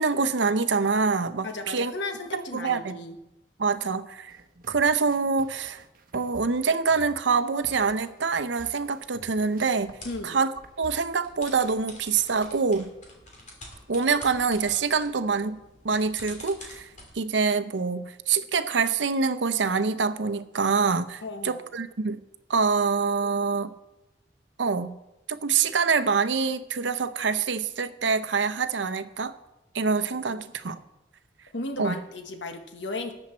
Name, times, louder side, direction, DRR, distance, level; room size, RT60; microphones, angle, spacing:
voice 1, 0.0-1.9 2.3-3.0 3.6-4.4 4.7-5.8 6.1-9.9 10.2-10.5 10.8-12.9 13.9-15.6 15.8-16.9 17.1-22.2 22.5-23.7 24.6-24.9 25.3-29.3 29.7-30.8 31.8-32.0, right 5 dB, 80° right, 13 dB, 0.7 m, -25 dB
voice 2, 1.4-3.2 10.0-10.4 21.2-21.6 30.2-30.4 31.5-33.1, left 2 dB, 80° left, 6 dB, 1.2 m, -35 dB
sound 1, 4.3-10.9, right 1 dB, 50° right, 1.0 m, -49 dB
sound 2, 9.7-10.3 11.2-17.1, left 1 dB, 40° left, 2.9 m, -47 dB
13.5 x 8.8 x 4.4 m, 0.92 s
head